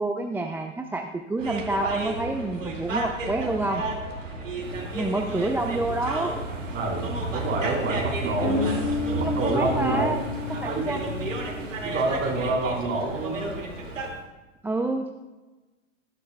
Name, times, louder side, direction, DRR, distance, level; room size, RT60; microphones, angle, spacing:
voice 1, 0.0-3.8 4.9-6.3 8.4-8.6 9.1-10.2 10.6-11.0 14.6-15.1, right 2 dB, 5° right, 4 dB, 0.5 m, -28 dB
sound 1, 1.4-14.1, right 3 dB, 80° right, 2.3 m, -32 dB
Industrial Ambience, 4.6-12.5, left 2 dB, 65° right, 2.1 m, -39 dB
voice 2, 6.7-8.8 9.1-10.1 10.6-10.9 11.8-13.6, right 3 dB, 30° right, -2 dB, 4.1 m, -28 dB
Guitar, 8.4-13.0, left 3 dB, 45° left, 2.5 m, -32 dB
19.0 x 10.5 x 2.3 m, 1.2 s
figure-of-eight pair, 95°, 38 cm